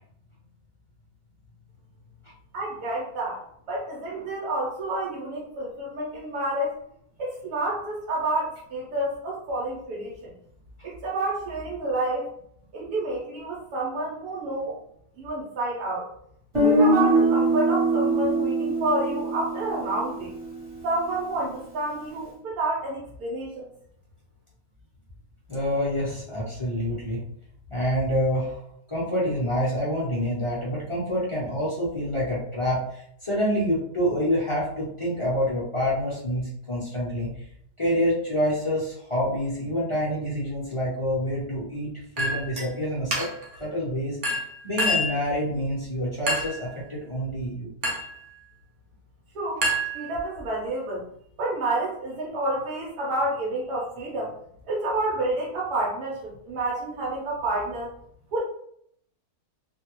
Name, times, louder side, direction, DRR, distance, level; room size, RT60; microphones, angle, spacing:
voice 1, 2.5-3.4 3.7-6.7 7.2-10.3 10.8-12.2 12.7-14.8 15.2-16.0 16.6-20.4 20.8-23.7 49.3-49.6 49.9-51.0 51.4-54.3 54.7-57.9 58.3-58.4, right 2 dB, 85° right, -4 dB, 1.2 m, -29 dB
Guitar, 16.5-20.5, right 2 dB, 25° right, 1.0 m, -23 dB
voice 2, 25.5-27.2 27.7-37.4 37.8-41.9 42.2-43.3 43.6-44.2 44.6-47.7, equal, 40° left, -7 dB, 0.4 m, -27 dB
Chink clink, 42.2-42.7 43.1-43.6 44.2-45.2 46.3-46.7 47.8-48.2 49.6-50.4, equal, 60° right, 0.9 m, -27 dB
2.6 x 2.3 x 2.9 m, 0.70 s
omnidirectional pair, 1.6 m